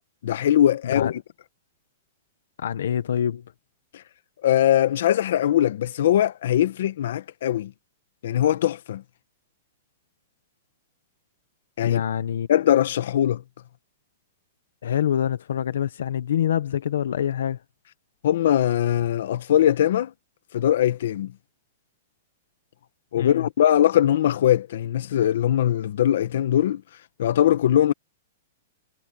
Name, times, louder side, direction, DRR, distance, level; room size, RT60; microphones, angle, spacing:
voice 1, 0.2-1.2 4.4-7.7 8.2-9.0 11.8-12.0 12.5-13.4 18.2-20.1 20.5-21.3 23.1-26.8 27.2-27.9, left 11 dB, 65° left, 1.3 m, -21 dB
voice 2, 2.6-3.4 11.8-12.5 14.8-17.6 23.2-23.5, left 9 dB, 80° left, 1.1 m, -25 dB
hypercardioid pair, 165°, 0 cm